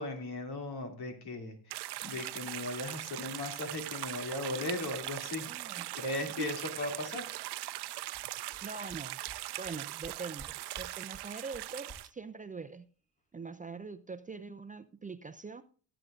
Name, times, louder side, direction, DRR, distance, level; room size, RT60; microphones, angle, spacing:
voice 1, 0.0-7.2, left 2 dB, 65° left, 2.8 m, -38 dB
sound 1, 1.7-12.1, right 16 dB, 70° right, 0.6 m, -41 dB
voice 2, 5.4-5.9 6.4-6.5 8.6-9.2 9.6-12.9 13.3-15.6, right 4 dB, 20° right, 0.5 m, -43 dB
sound 2, 7.8-7.9 8.1-8.2 8.5-8.6 8.9-9.0 9.3-9.4 9.6-9.7 10.0-10.5 10.7-10.9 11.1-11.2 11.5-11.6 11.9-12.0, right 1 dB, 15° left, 1.5 m, -50 dB
18.5 x 8.0 x 2.5 m
cardioid pair, 85°, 42 cm